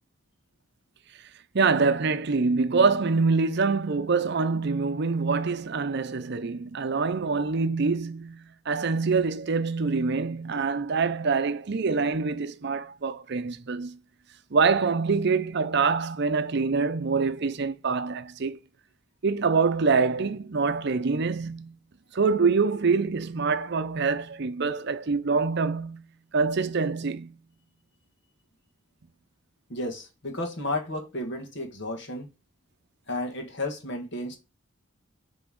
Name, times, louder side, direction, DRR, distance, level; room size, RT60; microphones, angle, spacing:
voice 1, 1.5-14.0 14.5-18.6 19.2-21.7 22.1-26.0 26.3-27.4, right 4 dB, 55° right, 0.6 m, -25 dB
voice 2, 29.7-32.3 33.1-34.4, left 1 dB, 60° left, 1.7 m, -32 dB
7.9 x 3.5 x 3.7 m
head